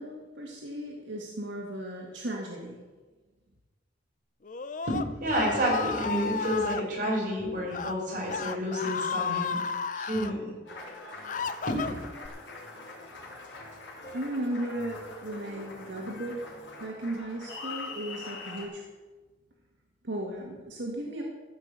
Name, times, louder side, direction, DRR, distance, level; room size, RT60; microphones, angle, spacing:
voice 1, 0.0-2.8 14.1-16.4 16.8-18.8 20.0-21.2, right 1 dB, 85° right, -1 dB, 1.9 m, -36 dB
Screaming, 4.4-6.8 7.6-7.9 8.3-10.3 10.9-12.3, left 6 dB, 45° left, 0.5 m, -33 dB
voice 2, 4.8-9.6 9.9-10.5 11.7-11.8, equal, 45° right, -4 dB, 5.2 m, -29 dB
Applause, 10.6-18.7, left 3 dB, 90° left, 3.5 m, -43 dB
15.0 x 5.9 x 8.4 m, 1.3 s
head